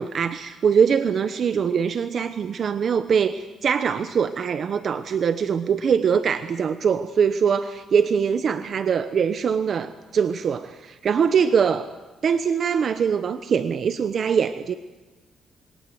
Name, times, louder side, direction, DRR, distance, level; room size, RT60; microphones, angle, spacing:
voice 1, 0.0-11.9 12.2-14.7, right 7 dB, 45° right, 10 dB, 1.1 m, -22 dB
27.5 x 22.5 x 8.0 m, 1.1 s
cardioid pair, 160°, 0 cm